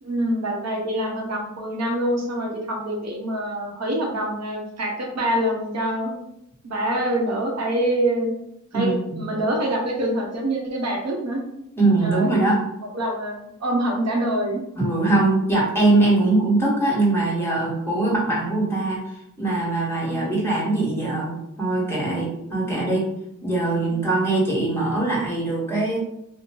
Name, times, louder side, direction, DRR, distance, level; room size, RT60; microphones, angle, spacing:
voice 1, 0.0-6.1 6.6-8.3 8.7-11.4 12.0-12.5 12.9-14.6 20.1-20.2 22.6-22.7, right 1 dB, 55° right, 0 dB, 0.8 m, -25 dB
voice 2, 8.7-9.2 11.8-12.6 14.7-23.1 23.4-26.0, right 2 dB, 5° left, -5 dB, 1.3 m, -22 dB
2.7 x 2.1 x 2.9 m, 0.79 s
cardioid pair, 65°, 32 cm